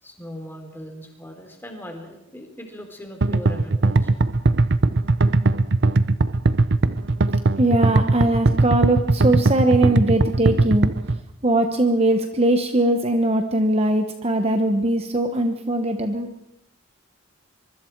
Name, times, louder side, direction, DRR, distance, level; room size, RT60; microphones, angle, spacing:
voice 1, 0.0-4.1, equal, 10° left, 3 dB, 3.6 m, -39 dB
sound 1, 3.2-11.2, right 2 dB, 55° right, 0.8 m, -19 dB
voice 2, 7.6-10.9 11.4-16.3, right 1 dB, 30° right, 6 dB, 1.1 m, -20 dB
24.5 x 23.5 x 4.7 m, 0.82 s
head